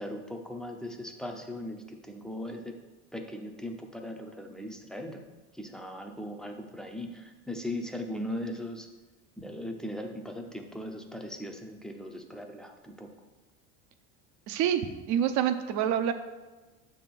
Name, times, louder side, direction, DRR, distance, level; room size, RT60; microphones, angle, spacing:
voice 1, 0.0-2.7 3.1-5.2 5.5-8.9 9.4-13.1, left 1 dB, ahead, 4 dB, 0.6 m, -39 dB
voice 2, 14.5-14.8 15.1-16.1, right 10 dB, 55° right, 9 dB, 0.7 m, -26 dB
6.9 x 3.6 x 5.9 m, 1.2 s
supercardioid pair, 120°, 33 cm